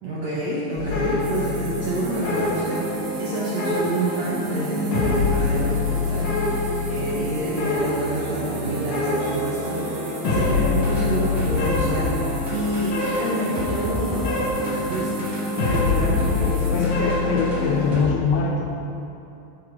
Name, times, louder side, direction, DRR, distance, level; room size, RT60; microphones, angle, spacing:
voice 1, 0.0-15.1 15.6-17.0, right 2 dB, 65° right, -8 dB, 1.8 m, -28 dB
sound 1, 0.8-17.9, left 3 dB, 65° left, 2.2 m, -25 dB
sound 2, 1.2-16.9, right 5 dB, 80° right, 3.3 m, -42 dB
sound 3, 2.1-18.0, equal, 30° right, 1.1 m, -33 dB
voice 2, 16.7-18.6, left 5 dB, 80° left, 0 dB, 2.3 m, -23 dB
10.5 x 6.8 x 4.8 m, 2.7 s
omnidirectional pair, 5.1 m